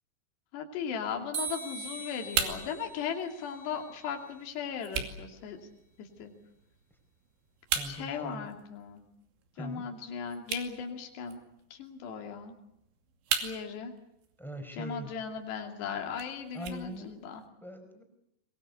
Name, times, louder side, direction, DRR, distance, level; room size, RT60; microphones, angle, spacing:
voice 1, 0.5-5.6 6.0-6.3 7.9-9.0 9.6-11.4 11.7-12.5 13.4-13.9 14.8-17.4, left 6 dB, 70° left, 3 dB, 4.7 m, -37 dB
sound 1, 1.3-4.4, right 3 dB, 40° right, 4.1 m, -41 dB
sound 2, 1.5-17.5, right 7 dB, 80° right, 4.9 m, -40 dB
voice 2, 7.7-8.5 9.5-9.8 14.4-15.1 16.5-17.2 17.6-18.0, equal, ahead, 7 dB, 4.4 m, -41 dB
23.5 x 22.5 x 8.3 m, 0.80 s
omnidirectional pair, 5.2 m